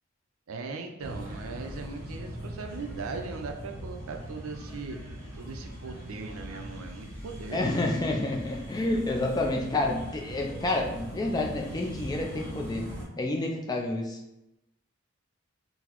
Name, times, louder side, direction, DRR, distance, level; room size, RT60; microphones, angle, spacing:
voice 1, 0.5-7.6, right 4 dB, 80° right, 4 dB, 0.4 m, -39 dB
sound 1, 1.0-13.0, equal, 10° right, 1.0 m, -40 dB
voice 2, 7.5-12.9 13.2-14.2, left 2 dB, 20° left, 1 dB, 0.3 m, -29 dB
3.9 x 2.0 x 2.9 m, 0.91 s
head